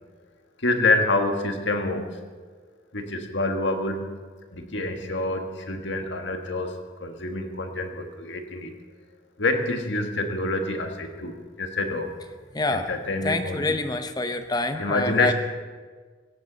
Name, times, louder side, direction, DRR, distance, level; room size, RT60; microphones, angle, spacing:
voice 1, 0.6-2.2 2.9-4.2 4.5-8.7 9.4-12.1 12.7-13.7 14.8-15.3, left 2 dB, 75° left, 4 dB, 1.7 m, -27 dB
voice 2, 12.5-12.9 13.2-15.3, left 2 dB, 20° left, 8 dB, 0.8 m, -26 dB
16.5 x 16.5 x 4.0 m, 1.5 s
head